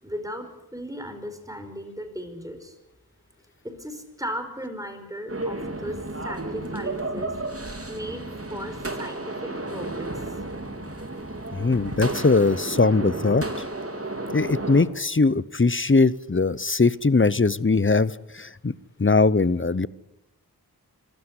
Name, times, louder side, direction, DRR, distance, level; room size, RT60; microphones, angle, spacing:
voice 1, 0.0-2.8 3.6-7.3 7.9-8.2 8.5-10.4, equal, 10° right, 7 dB, 5.0 m, -36 dB
sound 1, 5.3-14.8, right 2 dB, 35° right, 3.9 m, -32 dB
voice 2, 11.5-13.4 14.3-18.7 19.0-19.9, left 3 dB, 30° left, 19 dB, 0.8 m, -21 dB
25.5 x 16.0 x 9.8 m, 0.91 s
wide cardioid pair, 65°, 39 cm